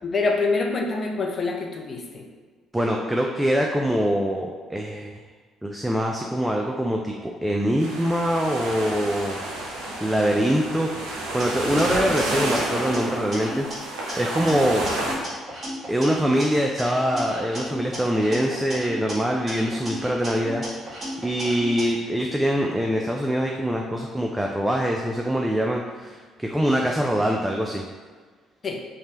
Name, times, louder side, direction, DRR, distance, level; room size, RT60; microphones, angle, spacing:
voice 1, 0.0-2.2 28.6-28.8, left 3 dB, 45° left, 1 dB, 0.5 m, -25 dB
voice 2, 2.7-5.1 5.6-7.1 7.4-9.6 10.0-13.7 14.2-14.9 15.9-20.6 21.2-27.8, equal, 10° right, 0 dB, 0.3 m, -24 dB
sound 1, 7.8-15.1, right 1 dB, 85° right, 0.5 m, -30 dB
sound 2, 11.4-13.7 14.1-16.4 16.8-19.1 19.5-21.8, equal, 40° right, 1.3 m, -34 dB
3.1 x 2.2 x 2.8 m, 1.5 s
hypercardioid pair, 60°, 0 cm